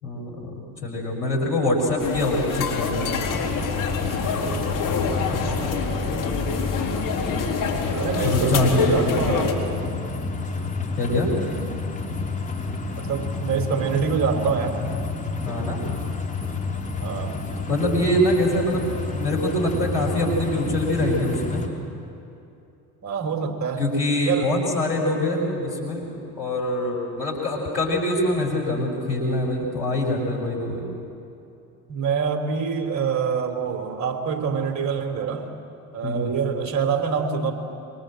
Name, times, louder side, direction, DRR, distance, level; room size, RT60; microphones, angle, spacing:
voice 1, 0.0-3.0 8.2-9.2 11.0-11.3 15.4-15.8 17.5-21.6 23.8-30.9 36.0-36.3, left 1 dB, 85° left, -2 dB, 5.9 m, -24 dB
sound 1, 2.0-9.5, left 5 dB, 40° left, 3.9 m, -26 dB
sound 2, 3.2-21.7, left 3 dB, 15° left, 3.6 m, -30 dB
voice 2, 4.4-5.0 7.9-9.6 13.0-14.8 17.0-17.4 23.0-23.8 24.2-24.5 31.9-35.5 35.9-37.5, right 6 dB, 35° right, 5 dB, 3.7 m, -26 dB
27.0 x 24.0 x 7.8 m, 2.7 s
figure-of-eight pair, 65°, 48 cm